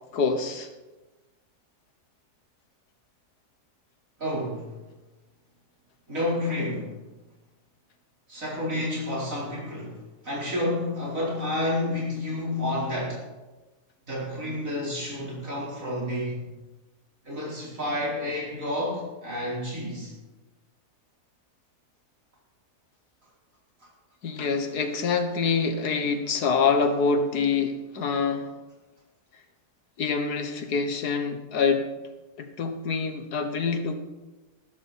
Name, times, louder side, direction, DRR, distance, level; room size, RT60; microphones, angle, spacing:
voice 1, 0.1-0.7 24.2-28.5 30.0-31.9 32.4-34.0, left 5 dB, 80° left, 7 dB, 1.8 m, -25 dB
voice 2, 4.2-4.7 6.1-7.0 8.3-13.2 14.1-16.5 17.2-20.1, left 1 dB, 55° right, -4 dB, 4.9 m, -30 dB
14.5 x 13.0 x 4.3 m, 1.1 s
omnidirectional pair, 1.7 m